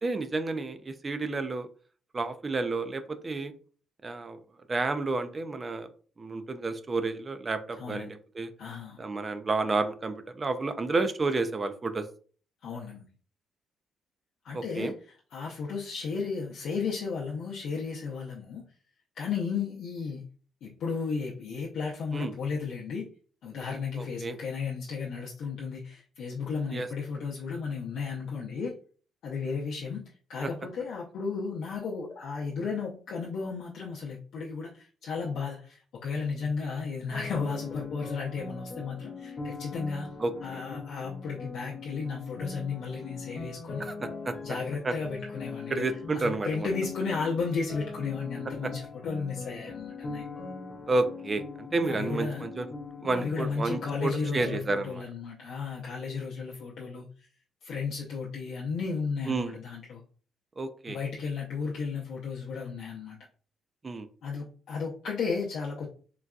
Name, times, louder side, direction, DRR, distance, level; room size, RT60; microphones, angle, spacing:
voice 1, 0.0-1.7 2.1-3.5 4.0-4.4 4.7-5.9 6.2-8.5 9.0-12.1 14.5-14.9 22.1-22.3 23.9-24.4 26.7-26.9 30.4-30.5 40.2-40.6 43.8-44.0 44.3-44.4 44.8-44.9 45.7-46.7 48.6-48.7 50.9-52.7 53.0-55.0 59.3-59.6 60.6-61.0 63.8-64.1, right 3 dB, 30° right, 10 dB, 0.4 m, -30 dB
voice 2, 8.6-9.0 12.6-13.1 14.4-14.9 15.3-18.6 19.2-20.2 20.6-23.0 23.4-28.7 29.2-30.0 30.3-34.7 35.0-40.1 40.4-43.8 44.4-50.2 51.9-52.5 53.2-57.1 57.6-60.0 60.9-63.2 64.2-65.9, left 5 dB, 75° left, -3 dB, 0.5 m, -34 dB
sound 1, 37.1-54.6, left 4 dB, 40° left, 0.7 m, -41 dB
3.9 x 2.2 x 2.3 m, 0.41 s
cardioid pair, 90°, 0 cm